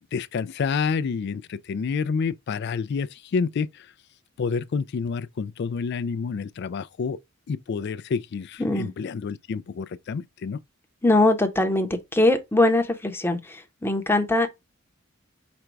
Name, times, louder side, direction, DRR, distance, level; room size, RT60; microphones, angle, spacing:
voice 1, 0.1-3.9 4.4-7.2 7.5-10.6, left 5 dB, 55° left, 0.3 m, -28 dB
voice 2, 8.6-8.9 11.0-14.5, left 2 dB, 10° left, 0.7 m, -22 dB
5.1 x 2.2 x 4.5 m
head